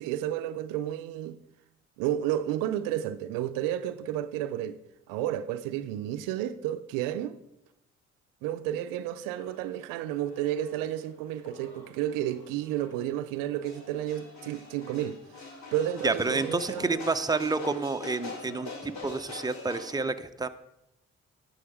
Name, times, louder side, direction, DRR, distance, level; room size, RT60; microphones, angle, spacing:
voice 1, 0.0-1.4 2.0-4.8 5.1-7.4 8.4-15.4 15.7-17.0, right 12 dB, 85° right, 0.5 m, -31 dB
sound 1, 9.3-19.9, left 3 dB, 60° left, 2.8 m, -45 dB
voice 2, 16.0-20.5, right 3 dB, 10° right, 0.7 m, -29 dB
11.0 x 6.3 x 4.9 m
hypercardioid pair, 50°, 32 cm